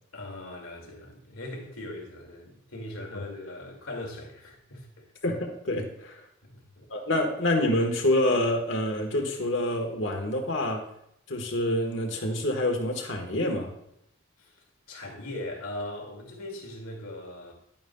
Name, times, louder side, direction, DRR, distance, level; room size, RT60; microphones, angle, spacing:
voice 1, 0.1-5.0 6.4-6.9 14.4-17.5, left 1 dB, 90° left, 2.2 m, -40 dB
voice 2, 5.2-6.2 6.9-10.8 11.3-13.7, left 1 dB, 60° left, 1.4 m, -27 dB
11.0 x 9.1 x 2.3 m
head